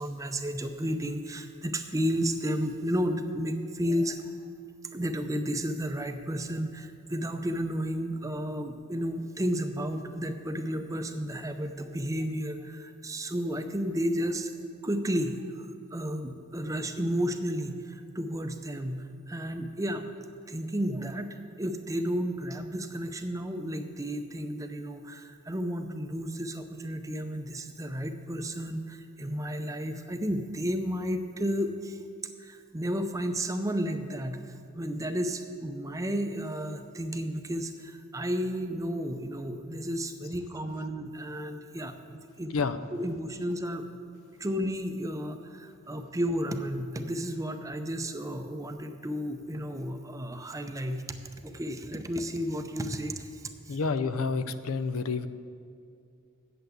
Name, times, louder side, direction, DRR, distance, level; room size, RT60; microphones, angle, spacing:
voice 1, 0.0-4.3 4.9-14.5 14.8-20.0 20.5-32.0 32.4-42.5 42.9-43.9 44.4-51.0 51.4-53.8, equal, 15° right, 7 dB, 0.6 m, -32 dB
voice 2, 53.7-55.3, left 4 dB, 75° left, 12 dB, 0.5 m, -29 dB
8.2 x 7.7 x 8.1 m, 2.4 s
head